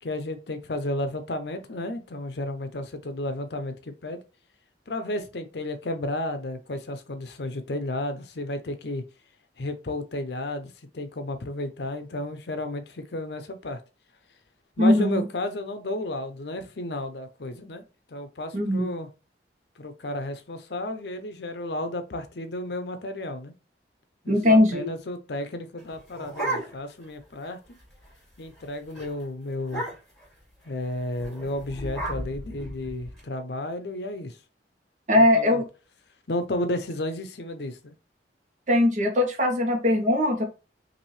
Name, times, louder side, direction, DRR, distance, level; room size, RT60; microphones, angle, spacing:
voice 1, 0.0-4.2 4.9-9.0 9.6-13.8 14.8-17.8 18.1-19.1 19.8-23.5 24.2-27.6 28.4-29.8 30.7-34.4 35.1-35.6 36.3-37.9, left 1 dB, 65° left, 0.7 m, -32 dB
voice 2, 14.8-15.2 18.5-18.9 24.3-24.9 35.1-35.6 38.7-40.4, left 1 dB, 45° right, 1.0 m, -20 dB
sound 1, 25.8-27.1 27.4-27.5 27.8-28.1 28.4-28.6 29.0-29.1 29.6-30.3 31.1-33.2, right 1 dB, ahead, 2.6 m, -34 dB
5.9 x 2.7 x 3.2 m
head